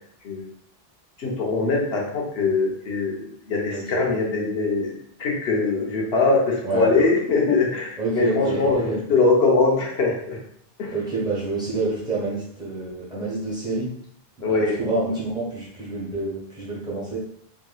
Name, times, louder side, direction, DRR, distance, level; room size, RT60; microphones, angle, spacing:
voice 1, 1.2-4.9 5.2-10.4 10.8-10.9 14.4-14.8, left 3 dB, 75° left, -2 dB, 1.1 m, -22 dB
voice 2, 3.7-4.0 6.6-6.9 8.0-9.0 10.9-13.9 14.4-17.2, right 3 dB, 5° right, -7 dB, 1.1 m, -27 dB
3.5 x 2.8 x 2.3 m, 0.69 s
omnidirectional pair, 1.0 m